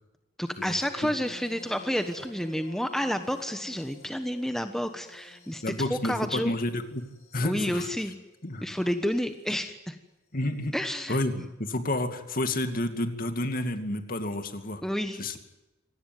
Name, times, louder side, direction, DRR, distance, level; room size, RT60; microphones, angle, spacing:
voice 1, 0.4-6.5 7.4-8.1 8.6-10.0 10.7-11.4 14.8-15.4, equal, ahead, 7 dB, 1.2 m, -30 dB
sound 1, 0.7-9.4 10.7-11.0 12.7-12.8, equal, 85° left, 5.7 m, -51 dB
voice 2, 5.6-7.0 7.3-7.9 8.4-8.6 10.3-10.7 11.1-11.3 11.6-14.8 15.2-15.4, left 1 dB, 45° left, 7 dB, 2.5 m, -30 dB
26.0 x 18.5 x 9.4 m, 1.0 s
head